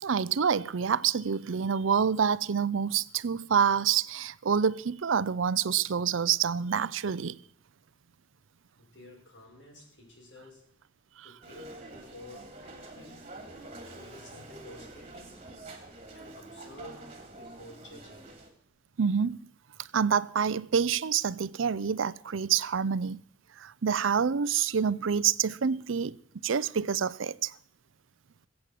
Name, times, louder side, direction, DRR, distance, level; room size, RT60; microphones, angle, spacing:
voice 1, 0.0-7.4 19.0-19.4 19.9-23.2 23.6-26.2 26.4-27.5, right 7 dB, 85° right, 0.5 m, -27 dB
voice 2, 8.8-10.6 11.2-13.3 13.9-15.5 16.1-18.3, left 1 dB, 65° left, 6.1 m, -51 dB
sound 1, 11.4-18.5, right 2 dB, 30° right, 2.9 m, -47 dB
20.0 x 8.3 x 7.7 m
head